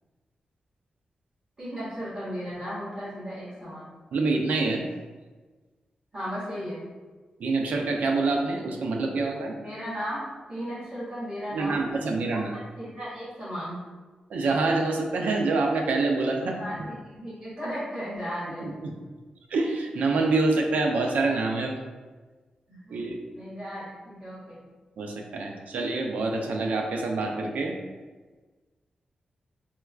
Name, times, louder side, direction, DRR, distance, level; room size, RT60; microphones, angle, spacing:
voice 1, 1.6-3.9 6.1-6.8 9.6-11.8 12.3-12.5 12.8-13.8 16.6-18.7 22.7-23.0 23.3-24.6, equal, 35° right, -11 dB, 1.4 m, -35 dB
voice 2, 4.1-4.8 7.4-9.5 11.5-12.5 14.3-16.6 18.6-18.9 19.5-21.8 22.9-23.2 25.0-27.8, right 3 dB, 85° right, 2 dB, 0.4 m, -26 dB
4.3 x 2.3 x 2.3 m, 1.3 s
wide cardioid pair, 150°, 3 cm